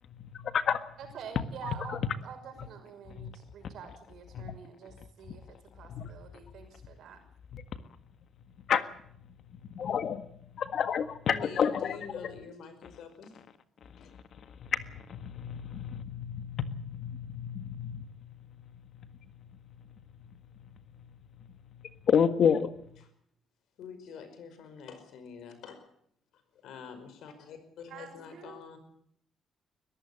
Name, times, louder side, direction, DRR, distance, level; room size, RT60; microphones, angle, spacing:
voice 1, 0.1-0.8 1.6-2.0 3.2-3.3 4.3-4.5 5.9-6.1 7.5-7.6 8.7-8.9 9.7-10.3 10.5-12.0 14.6-18.3 18.6-18.7 19.0-19.1 19.4-19.5 20.2-20.6 21.0-21.1 21.4-21.5 21.8-22.7, left 7 dB, 60° left, 11 dB, 1.7 m, -30 dB
voice 2, 1.0-7.2 27.9-28.6, right 7 dB, 75° right, 7 dB, 5.8 m, -47 dB
voice 3, 11.2-13.5 14.0-14.1 23.8-25.9 26.3-28.8, left 6 dB, 80° left, 9 dB, 5.2 m, -46 dB
21.5 x 14.5 x 9.9 m, 0.67 s
cardioid pair, 90°, 0 cm